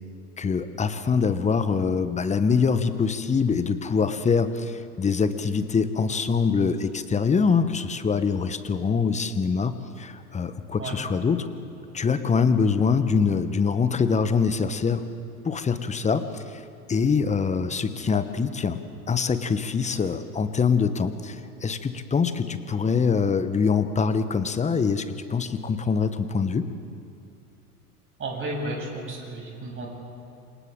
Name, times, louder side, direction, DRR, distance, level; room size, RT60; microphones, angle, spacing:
voice 1, 0.4-11.5 11.9-15.0 15.4-16.6 16.9-18.8 19.1-26.7, left 5 dB, 15° left, 11 dB, 1.1 m, -24 dB
voice 2, 28.2-29.9, right 2 dB, 25° right, -1 dB, 7.1 m, -33 dB
28.5 x 26.5 x 3.8 m, 2.6 s
figure-of-eight pair, 85°, 46 cm